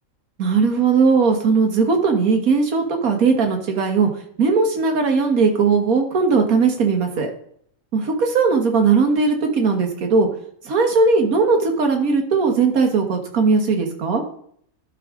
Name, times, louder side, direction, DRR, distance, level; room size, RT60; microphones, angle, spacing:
voice 1, 0.4-4.1 4.4-7.3 7.9-10.3 10.7-14.2, right 4 dB, 80° right, 4 dB, 1.8 m, -18 dB
12.0 x 5.1 x 3.7 m, 0.64 s
omnidirectional pair, 1.5 m